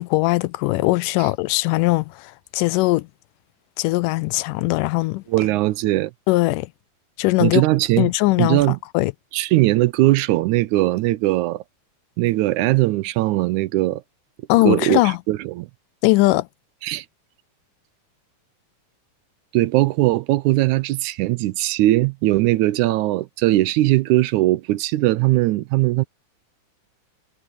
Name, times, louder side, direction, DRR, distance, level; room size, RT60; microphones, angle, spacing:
voice 1, 0.0-3.1 3.8-5.2 6.3-6.7 7.2-7.6 8.0-8.6 8.9-9.1 14.5-15.2 16.0-16.5, left 20 dB, 85° left, 2.2 m, -20 dB
voice 2, 5.3-6.1 7.4-8.1 8.4-8.8 9.3-11.6 12.2-14.0 14.7-15.7 16.8-17.1 19.5-26.0, right 17 dB, 80° right, 1.9 m, -19 dB
omnidirectional pair, 3.7 m